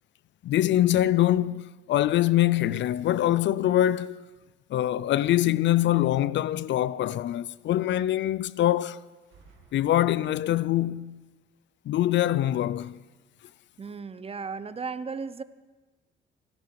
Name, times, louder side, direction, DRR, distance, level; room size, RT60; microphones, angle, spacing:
voice 1, 0.4-4.2 4.7-9.0 9.7-11.2 11.9-13.0, left 13 dB, 65° left, 0.5 m, -24 dB
sound 1, 9.1-10.7, right 5 dB, 80° right, 2.4 m, -59 dB
voice 2, 13.8-15.4, right 5 dB, 30° right, 0.7 m, -35 dB
24.5 x 12.0 x 4.7 m
cardioid pair, 90°, 20 cm